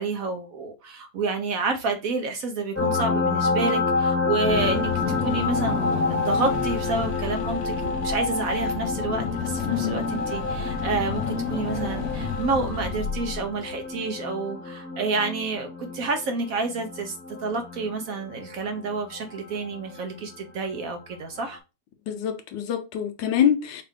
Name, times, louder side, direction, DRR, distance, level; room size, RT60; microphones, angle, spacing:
voice 1, 0.0-21.6, right 4 dB, 65° right, 0.9 m, -29 dB
sound 1, 2.7-20.0 21.5-21.6, left 4 dB, 15° left, 0.5 m, -29 dB
Car / Engine, 4.4-13.6, left 5 dB, 60° left, 0.9 m, -31 dB
voice 2, 9.7-10.0 22.1-23.8, left 9 dB, 90° left, 1.5 m, -25 dB
5.4 x 2.5 x 3.5 m
omnidirectional pair, 1.9 m